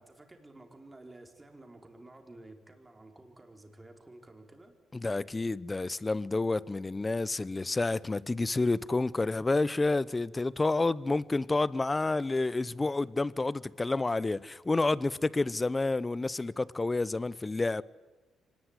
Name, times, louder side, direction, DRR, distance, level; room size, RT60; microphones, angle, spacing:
voice 1, 0.0-4.8, right 2 dB, 15° right, 4.6 m, -52 dB
voice 2, 4.9-17.8, left 3 dB, 20° left, 0.8 m, -29 dB
25.0 x 20.0 x 9.9 m
cardioid pair, 90°, 0 cm